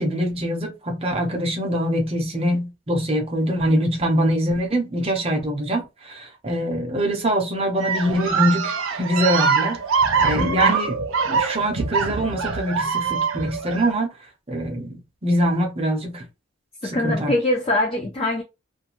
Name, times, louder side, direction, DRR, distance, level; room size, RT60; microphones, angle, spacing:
voice 1, 0.0-10.9 11.3-14.1 14.5-16.2 16.8-17.3, equal, 30° right, 0.7 m, -24 dB
sound 1, 7.8-13.9, right 5 dB, 80° right, 0.6 m, -23 dB
voice 2, 10.4-10.7 16.8-18.4, left 2 dB, 25° left, 0.4 m, -23 dB
2.5 x 2.2 x 2.8 m
head